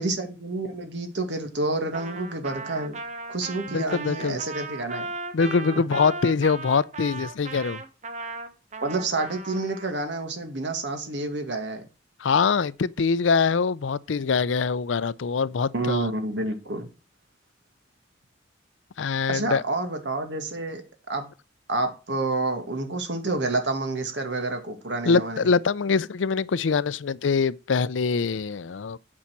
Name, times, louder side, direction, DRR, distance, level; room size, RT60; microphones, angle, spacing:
voice 1, 0.0-3.0 3.3-5.1 8.8-11.9 15.7-16.9 19.3-20.8 21.1-21.2 21.7-25.5, right 2 dB, 70° right, 2.1 m, -29 dB
Trumpet, 1.9-9.9, right 3 dB, 40° right, 1.1 m, -37 dB
voice 2, 3.7-4.4 5.3-7.8 12.2-16.1 19.0-19.6 25.1-29.0, left 5 dB, 90° left, 0.5 m, -24 dB
8.7 x 5.6 x 6.0 m
head